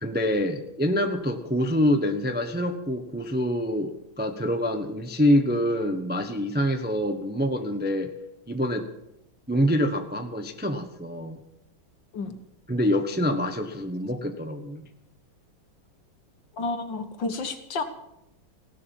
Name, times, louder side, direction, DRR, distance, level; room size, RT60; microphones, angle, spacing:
voice 1, 0.0-8.1 8.5-8.9 9.5-11.4 12.7-14.9, equal, 10° right, 6 dB, 0.7 m, -26 dB
voice 2, 16.5-17.8, left 3 dB, 65° left, 7 dB, 2.1 m, -30 dB
16.5 x 11.5 x 7.2 m, 0.82 s
omnidirectional pair, 2.2 m